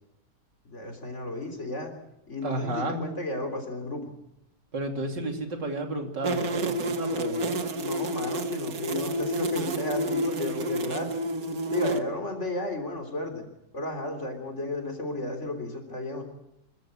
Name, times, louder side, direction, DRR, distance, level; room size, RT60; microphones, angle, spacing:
voice 1, 0.7-1.9 2.3-4.1 7.8-11.2 11.7-13.4 13.7-16.2, left 1 dB, 40° left, 5 dB, 3.7 m, -33 dB
voice 2, 2.4-3.0 4.7-7.6, right 2 dB, 90° right, 4 dB, 3.6 m, -32 dB
sound 1, 6.2-12.0, right 1 dB, 60° right, 1.8 m, -29 dB
26.0 x 14.5 x 8.9 m, 0.89 s
omnidirectional pair, 1.9 m